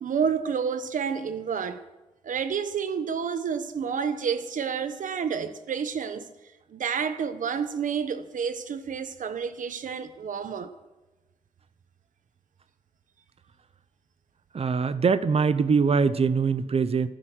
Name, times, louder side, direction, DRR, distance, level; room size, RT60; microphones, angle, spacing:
voice 1, 0.0-1.8 2.2-6.3 6.7-10.7, right 6 dB, 80° right, 1.2 m, -29 dB
voice 2, 14.5-17.1, right 5 dB, 50° right, 0.9 m, -23 dB
15.0 x 14.0 x 6.3 m
wide cardioid pair, 90°, 13 cm